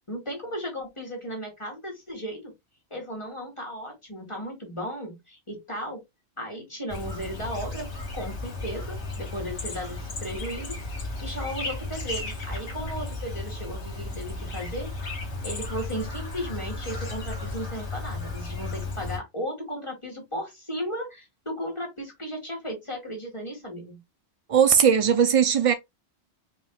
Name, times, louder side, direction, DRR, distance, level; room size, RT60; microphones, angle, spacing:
voice 1, 0.1-2.5 2.9-6.0 6.4-7.9 8.1-10.7 11.2-14.9 15.4-24.0, equal, 25° left, 2.0 m, -35 dB
Chirp tweet, 6.9-19.2, left 2 dB, 75° left, 1.8 m, -34 dB
voice 2, 24.5-25.7, right 8 dB, 65° right, 0.3 m, -19 dB
5.0 x 3.6 x 2.3 m
omnidirectional pair, 1.2 m